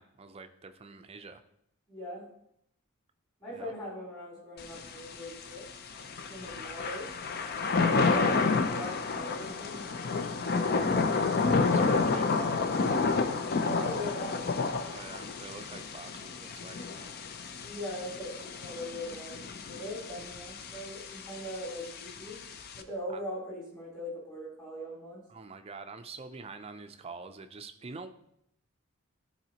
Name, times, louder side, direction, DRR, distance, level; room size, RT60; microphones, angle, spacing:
voice 1, 0.0-1.4 3.5-3.7 7.6-8.4 11.6-12.8 14.9-17.2 23.1-23.2 25.3-28.1, right 4 dB, 30° right, 8 dB, 0.4 m, -46 dB
voice 2, 1.9-2.2 3.4-5.6 6.3-7.1 7.8-9.9 10.2-10.9 13.6-14.8 17.6-19.4 19.7-22.3 22.7-25.2, equal, 20° left, -6 dB, 3.1 m, -40 dB
Thunder / Rain, 4.6-22.8, left 4 dB, 45° left, 0.5 m, -30 dB
12.0 x 4.2 x 2.8 m, 0.74 s
head